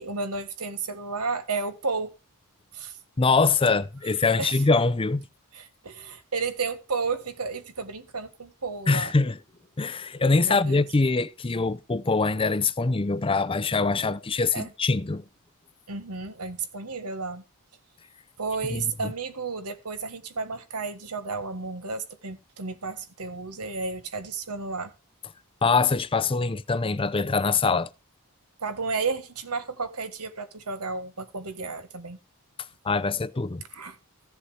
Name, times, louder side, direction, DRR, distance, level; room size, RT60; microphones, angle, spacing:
voice 1, 0.0-2.1 2.7-2.9 4.4-4.6 5.5-9.1 10.4-10.8 14.5-14.7 15.9-17.4 18.4-24.9 28.6-32.2 33.7-33.9, right 4 dB, 90° right, 1.7 m, -32 dB
voice 2, 3.2-5.2 8.9-9.4 9.8-15.2 18.7-19.1 25.6-27.9 32.8-33.6, left 4 dB, 25° left, 0.5 m, -24 dB
15.0 x 7.1 x 5.0 m
head